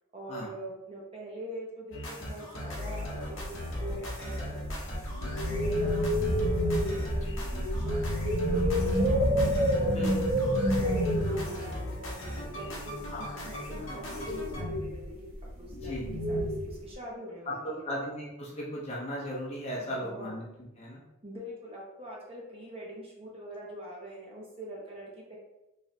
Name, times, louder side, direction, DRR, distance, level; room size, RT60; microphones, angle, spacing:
voice 1, 0.1-9.3 9.7-10.3 10.7-15.3 15.6-16.0 16.3-17.9 19.8-20.3 21.2-25.4, right 1 dB, 25° right, -3 dB, 0.7 m, -43 dB
sound 1, 1.9-14.6, left 1 dB, 60° left, 0.8 m, -38 dB
sound 2, 3.0-13.1 13.7-16.9, equal, 75° right, 1.1 m, -29 dB
voice 2, 15.7-16.1 17.8-20.4 20.8-21.0, equal, 30° left, -4 dB, 0.7 m, -36 dB
3.2 x 3.0 x 2.8 m, 0.94 s
head